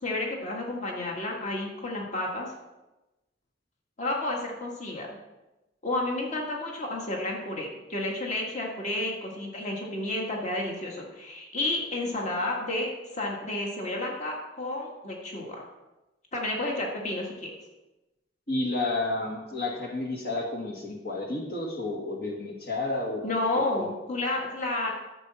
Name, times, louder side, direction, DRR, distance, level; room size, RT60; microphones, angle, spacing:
voice 1, 0.0-2.5 4.0-5.1 5.8-15.6 16.3-17.5 23.2-24.9, left 2 dB, 40° left, -1 dB, 1.8 m, -31 dB
voice 2, 18.5-23.3, left 2 dB, 60° left, -1 dB, 1.8 m, -31 dB
13.0 x 7.4 x 4.3 m, 1.0 s
head